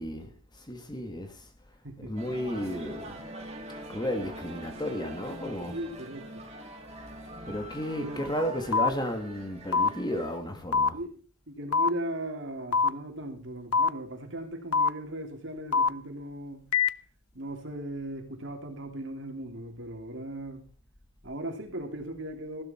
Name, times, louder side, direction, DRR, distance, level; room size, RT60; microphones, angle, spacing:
voice 1, 0.0-1.5 2.0-3.3 3.9-5.8 7.5-11.0, equal, 20° left, 1.7 m, -33 dB
voice 2, 1.8-2.2 5.7-6.3 7.9-8.2 10.9-11.2 11.5-16.7 17.3-20.7 21.2-22.6, right 1 dB, 55° right, 3.0 m, -38 dB
sound 1, 2.2-10.4, right 1 dB, 30° right, 3.2 m, -43 dB
sound 2, 8.7-8.9 9.7-9.9 10.7-10.9 11.7-11.9 12.7-12.9 13.7-13.9 14.7-14.9 15.7-15.9 16.7-16.9, left 5 dB, 90° left, 0.7 m, -23 dB
15.0 x 12.0 x 4.4 m
head